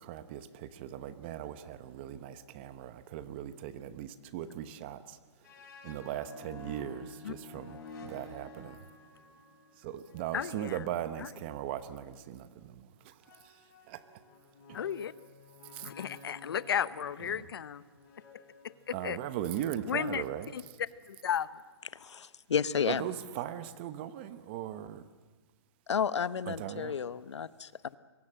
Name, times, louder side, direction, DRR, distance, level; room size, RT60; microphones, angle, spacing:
voice 1, 0.0-5.2 5.8-8.8 9.8-13.5 13.9-14.0 14.7-14.8 15.7-15.9 17.3-17.4 18.9-20.5 22.8-25.0 26.5-26.9, right 11 dB, 25° right, 12 dB, 0.9 m, -39 dB
sound 1, 5.4-12.1 13.2-20.6, left 3 dB, 40° left, 6.5 m, -53 dB
voice 2, 10.3-10.8 11.2-11.3 14.7-15.1 15.8-17.8 18.6-19.2 19.9-20.2 20.5-20.6 21.1-21.5, left 8 dB, 55° left, 16 dB, 0.9 m, -34 dB
voice 3, 21.9-23.1 25.9-28.0, left 7 dB, 85° left, 15 dB, 0.9 m, -32 dB
25.5 x 23.0 x 7.7 m, 1.3 s
hypercardioid pair, 165°, 14 cm